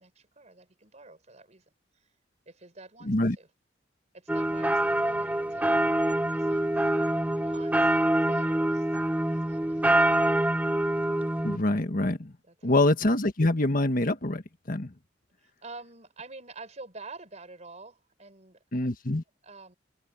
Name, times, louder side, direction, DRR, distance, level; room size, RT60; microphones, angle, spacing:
voice 1, 0.0-1.6 1.9-2.1 2.5-3.5 4.1-8.9 9.2-10.0 12.4-12.8 15.4-18.6 19.4-19.8, right 3 dB, 40° right, 4.6 m, -48 dB
voice 2, 3.0-3.4 11.4-12.3 12.6-14.4 14.7-14.9 18.7-19.2, left 2 dB, 45° left, 1.5 m, -25 dB
sound 1, 4.3-11.6, right 1 dB, 10° right, 0.4 m, -25 dB
head